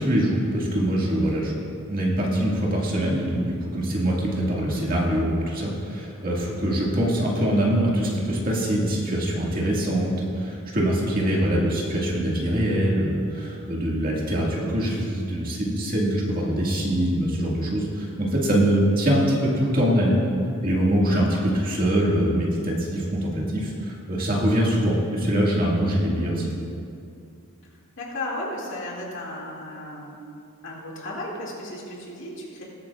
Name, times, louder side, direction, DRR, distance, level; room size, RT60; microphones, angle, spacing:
voice 1, 0.0-20.3 20.6-26.6, equal, 40° right, -4 dB, 2.0 m, -23 dB
voice 2, 6.4-6.7 21.2-21.4 28.0-30.2 30.6-32.6, left 1 dB, 60° left, -4 dB, 2.4 m, -35 dB
19.5 x 8.6 x 2.5 m, 2.4 s
head